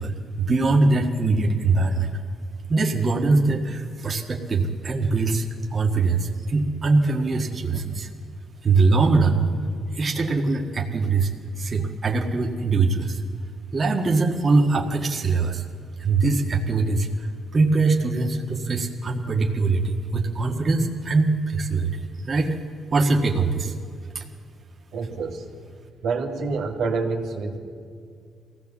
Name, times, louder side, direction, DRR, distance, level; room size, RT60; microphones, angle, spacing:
voice 1, 0.0-2.1 2.7-5.5 5.7-8.1 8.6-9.5 9.9-11.3 11.6-13.2 13.7-15.7 16.0-22.0 22.2-22.6 22.9-23.7 24.2-24.3, right 3 dB, 35° right, 1 dB, 1.7 m, -22 dB
voice 2, 24.9-25.5 26.0-27.6, right 4 dB, 85° right, 0 dB, 2.4 m, -27 dB
22.5 x 16.0 x 7.3 m, 2.2 s
cardioid pair, 90°, 0 cm